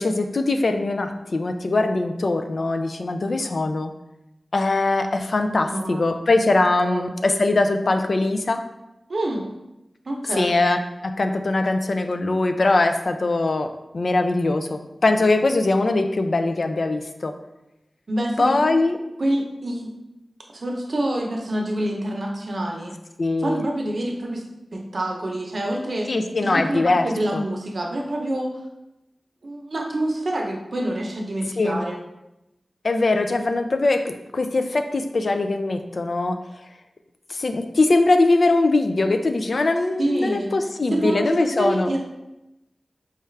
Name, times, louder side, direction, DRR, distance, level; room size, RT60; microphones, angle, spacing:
voice 1, 0.0-3.9 4.5-8.6 10.4-13.7 13.9-17.3 18.4-19.0 23.2-23.6 26.1-27.4 31.6-31.8 32.8-36.4 37.3-41.9, left 2 dB, 65° left, 6 dB, 0.3 m, -21 dB
voice 2, 5.6-6.2 6.8-7.2 9.1-9.4 10.1-10.6 15.1-15.2 18.1-18.7 19.2-19.9 20.5-22.9 23.4-24.4 24.7-26.1 26.5-28.5 29.4-32.0 40.0-40.5 40.9-42.0, right 1 dB, 65° right, 1 dB, 0.7 m, -27 dB
4.3 x 2.4 x 3.2 m, 0.92 s
wide cardioid pair, 75°, 0 cm